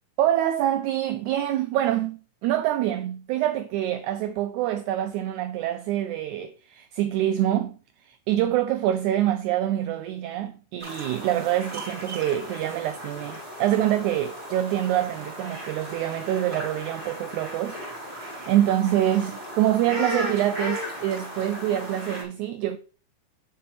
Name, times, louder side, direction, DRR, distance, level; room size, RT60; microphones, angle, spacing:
voice 1, 0.2-17.8 18.5-22.8, right 12 dB, 90° right, 1.7 m, -25 dB
sound 1, 10.8-22.2, equal, 20° right, 3.2 m, -36 dB
7.4 x 7.0 x 3.1 m
omnidirectional pair, 3.9 m